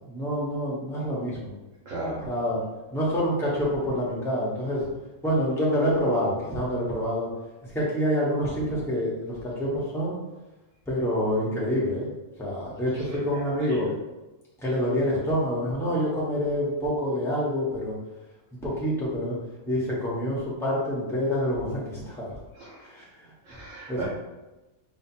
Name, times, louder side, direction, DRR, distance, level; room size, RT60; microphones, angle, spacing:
voice 1, 0.0-1.5 2.2-2.6 2.9-4.9 5.2-7.3 7.6-10.2 10.9-12.1 12.4-13.9 14.6-17.9 18.6-19.4 19.7-22.3 22.9-23.3 23.9-24.0, equal, ahead, -6 dB, 1.0 m, -27 dB
voice 2, 1.8-2.2 13.1-13.4 13.7-13.8 22.6-22.9 23.4-24.0, right 2 dB, 80° right, -8 dB, 1.6 m, -36 dB
4.2 x 2.3 x 4.4 m, 1.1 s
omnidirectional pair, 1.3 m